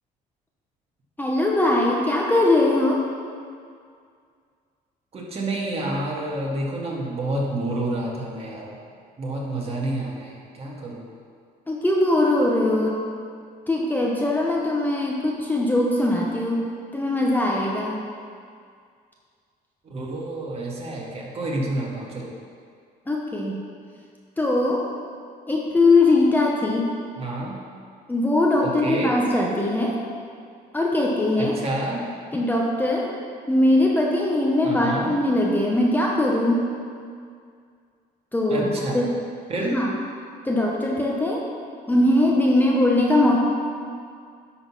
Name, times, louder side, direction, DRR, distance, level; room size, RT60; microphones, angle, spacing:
voice 1, 1.2-3.1 11.7-13.0 13.7-16.6 16.9-18.0 23.1-23.6 24.4-24.9 25.5-26.9 28.1-30.0 30.7-31.6 32.3-33.1 33.5-36.7 38.3-39.1 39.7-39.9 40.4-41.4 41.9-43.4, left 2 dB, 10° left, -2 dB, 0.9 m, -21 dB
voice 2, 5.1-8.7 9.2-11.0 19.9-22.3 27.2-27.6 28.6-29.2 31.4-32.0 34.6-35.1 38.5-39.0 39.5-39.8, right 1 dB, 35° right, -3 dB, 1.9 m, -29 dB
10.5 x 3.9 x 6.1 m, 2.2 s
cardioid pair, 110°, 17 cm